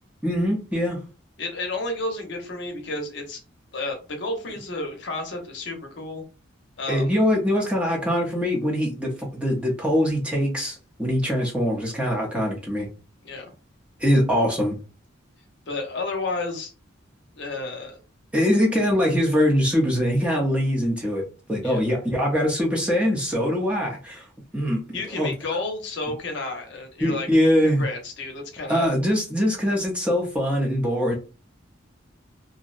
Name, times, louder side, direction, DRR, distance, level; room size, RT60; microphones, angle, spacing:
voice 1, 0.2-1.0 6.9-12.9 14.0-14.8 18.3-21.2 21.5-24.2 24.5-24.9 25.2-25.3 27.0-27.8 28.7-31.1, equal, 5° right, -2 dB, 0.5 m, -22 dB
voice 2, 1.4-3.4 3.7-6.2 6.8-7.1 13.2-13.5 15.7-16.7 17.4-18.0 21.6-21.8 24.9-27.3 27.6-28.9, left 2 dB, 60° left, 3 dB, 0.6 m, -31 dB
2.6 x 2.0 x 2.4 m, 0.34 s
head